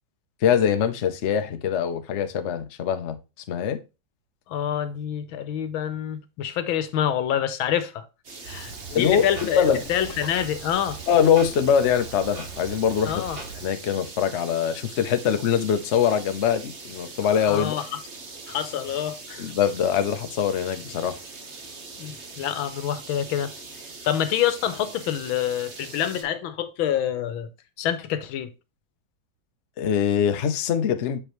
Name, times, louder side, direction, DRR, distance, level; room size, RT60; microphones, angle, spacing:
voice 1, 0.4-3.2 3.5-3.8 8.9-9.2 9.6-9.8 11.1-13.2 13.6-17.8 19.4-21.2 29.8-31.2, left 8 dB, 55° left, 0.7 m, -23 dB
voice 2, 4.5-8.1 8.4-11.0 13.1-13.4 17.4-18.0 18.5-19.4 22.0-23.5 24.0-27.5 27.8-28.5, left 10 dB, 85° left, 1.7 m, -27 dB
sound 1, 8.2-26.2, right 3 dB, 40° right, 1.3 m, -42 dB
Clock, 8.4-13.7, right 4 dB, 75° right, 3.4 m, -40 dB
7.5 x 5.0 x 3.0 m
omnidirectional pair, 2.2 m